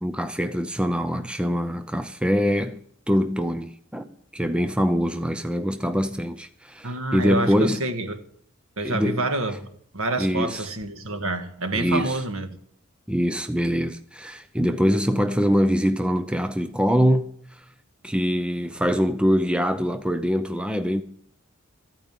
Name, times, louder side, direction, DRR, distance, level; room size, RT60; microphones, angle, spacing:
voice 1, 0.0-4.1 4.3-7.8 8.8-9.2 10.2-10.6 11.7-12.2 13.1-17.6 18.0-21.0, equal, 5° right, 0.5 m, -24 dB
voice 2, 6.8-8.2 8.8-9.7 9.9-12.5, right 2 dB, 70° right, 1.6 m, -28 dB
14.0 x 9.0 x 9.0 m
head